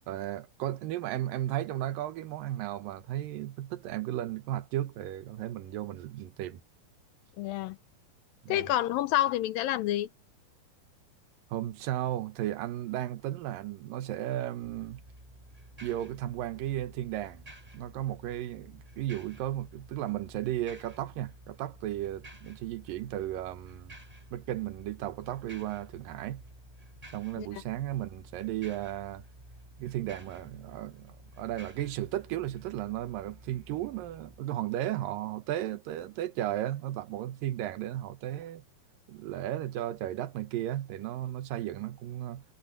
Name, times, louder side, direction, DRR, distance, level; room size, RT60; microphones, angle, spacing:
voice 1, 0.1-6.6 8.4-8.7 11.5-15.0 15.8-17.4 17.7-24.0 24.3-26.4 27.1-29.2 29.8-38.6 39.1-42.4, right 13 dB, 70° right, 2.6 m, -35 dB
voice 2, 7.4-7.8 8.5-10.1 27.4-27.5, left 13 dB, 80° left, 2.2 m, -28 dB
sound 1, 14.6-34.4, right 1 dB, 10° right, 7.9 m, -52 dB
omnidirectional pair, 4.4 m